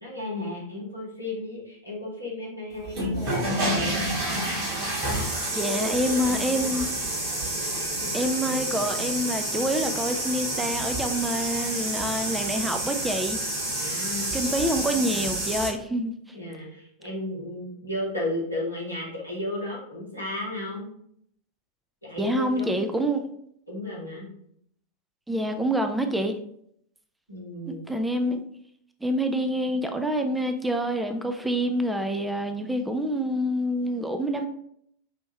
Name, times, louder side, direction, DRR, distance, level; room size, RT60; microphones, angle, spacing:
voice 1, 0.0-4.0 5.5-6.8 13.7-14.3 15.0-15.3 16.3-20.9 22.0-23.1 23.7-24.3 27.3-27.8, left 1 dB, 90° right, -5 dB, 1.6 m, -34 dB
sound 1, 2.8-15.7, right 1 dB, 45° right, 1.6 m, -29 dB
voice 2, 5.5-7.1 8.1-13.4 14.3-16.1 22.2-23.2 25.3-26.3 27.9-28.4 29.0-34.5, equal, 5° right, 6 dB, 0.3 m, -27 dB
5.5 x 2.6 x 3.0 m, 0.70 s
figure-of-eight pair, 90°, 0 cm